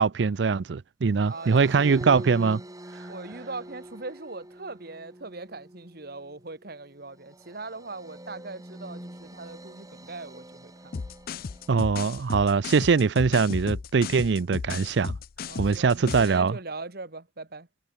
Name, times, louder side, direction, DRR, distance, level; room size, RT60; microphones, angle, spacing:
voice 1, 0.0-2.6 11.7-15.2 15.6-16.6, right 5 dB, 75° right, 0.5 m, -22 dB
sound 1, 1.2-12.5, right 1 dB, 20° right, 2.9 m, -45 dB
voice 2, 1.3-1.9 3.1-10.7 15.5-17.7, right 3 dB, 60° right, 2.3 m, -40 dB
sound 2, 10.9-16.4, left 5 dB, 55° left, 0.5 m, -35 dB
head